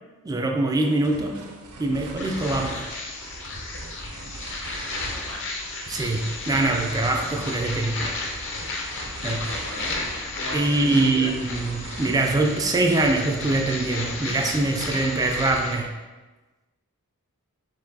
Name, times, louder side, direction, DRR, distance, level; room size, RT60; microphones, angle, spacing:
voice 1, 0.2-1.4 1.8-2.8 5.9-8.2 9.2-9.4 10.5-15.9, right 2 dB, 15° right, 3 dB, 0.3 m, -23 dB
sound 1, 0.8-13.1, right 3 dB, 80° right, 0.6 m, -42 dB
sound 2, 2.1-15.8, left 2 dB, 55° left, 0.7 m, -33 dB
voice 2, 9.3-10.1 10.3-11.3, left 1 dB, 80° left, -3 dB, 1.2 m, -37 dB
4.5 x 2.6 x 3.9 m, 1.2 s
head